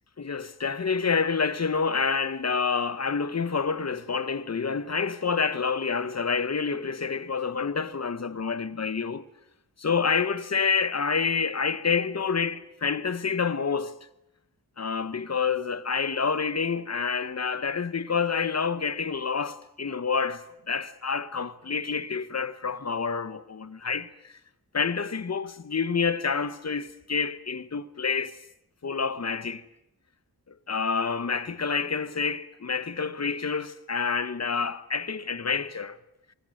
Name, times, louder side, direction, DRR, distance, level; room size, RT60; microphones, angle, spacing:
voice 1, 0.2-9.2 9.8-14.1 14.8-24.4 24.7-28.4 28.8-29.6 30.7-36.0, left 5 dB, 45° left, 1.1 m, -28 dB
24.5 x 21.0 x 7.8 m
wide cardioid pair, 125°, 36 cm